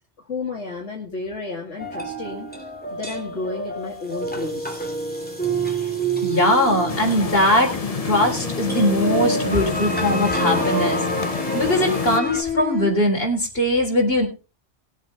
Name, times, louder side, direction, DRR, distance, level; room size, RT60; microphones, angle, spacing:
voice 1, 0.2-4.9, left 3 dB, 75° left, -1 dB, 2.5 m, -32 dB
sound 1, 1.8-12.4, right 2 dB, 5° left, 2.8 m, -28 dB
sound 2, 3.9-12.9, left 7 dB, 50° right, 6.9 m, -33 dB
voice 2, 6.2-7.8 8.0-14.3, left 1 dB, 55° left, 1 dB, 4.1 m, -21 dB
sound 3, 6.9-12.2, left 4 dB, 35° left, 0.9 m, -29 dB
20.5 x 7.5 x 4.1 m, 0.32 s
omnidirectional pair, 1.2 m